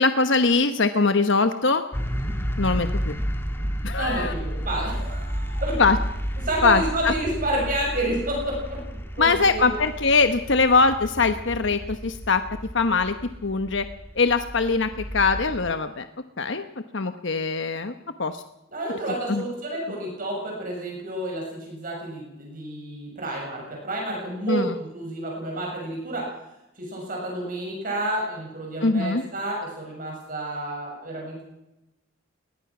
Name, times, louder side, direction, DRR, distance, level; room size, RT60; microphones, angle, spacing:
voice 1, 0.0-1.8 2.6-3.2 3.8-4.3 5.8-6.0 6.6-7.1 9.2-12.4 12.7-13.1 13.4-13.8 14.2-16.1 16.4-16.6 16.9-17.9 18.2-18.4 19.3-19.4 24.5-24.7 28.8-29.2, left 4 dB, 60° left, 9 dB, 1.1 m, -22 dB
sound 1, 1.9-15.7, equal, 10° left, 1.5 m, -32 dB
voice 2, 4.0-5.8 6.4-8.8 9.1-9.8 18.7-26.2 26.8-31.4, right 1 dB, 40° right, -1 dB, 6.8 m, -30 dB
22.0 x 20.0 x 6.1 m, 0.92 s
head